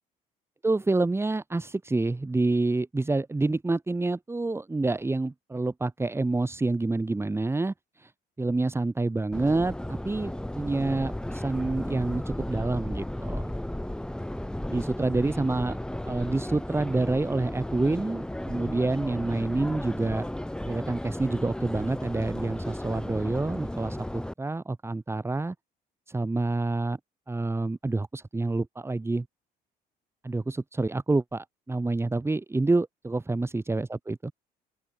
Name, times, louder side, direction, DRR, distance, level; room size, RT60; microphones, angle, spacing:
voice 1, 0.6-8.1 8.4-13.5 14.7-15.8 16.0-20.3 20.6-25.5 26.1-27.0 27.3-29.3 30.2-34.3, right 2 dB, 15° right, 4.8 m, -28 dB
Subway metro underground, 9.3-24.3, left 1 dB, 5° left, 3.9 m, -34 dB
open air
cardioid pair, 110°, 17 cm